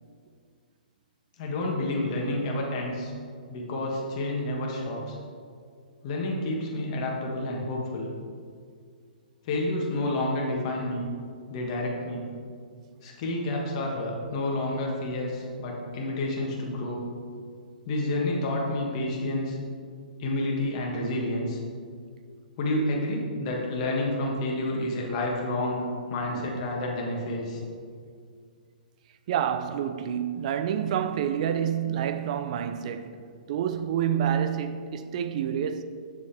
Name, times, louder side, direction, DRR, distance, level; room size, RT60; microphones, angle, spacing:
voice 1, 1.4-3.1 3.5-5.2 6.0-8.1 9.4-11.1 11.5-12.3 13.0-17.0 17.8-19.6 20.2-21.6 22.6-25.8 26.1-27.6, left 1 dB, 40° left, 1.7 m, -29 dB
voice 2, 29.3-35.8, right 9 dB, 50° right, 0.5 m, -28 dB
8.1 x 6.7 x 3.4 m
hypercardioid pair, 145°, 5 cm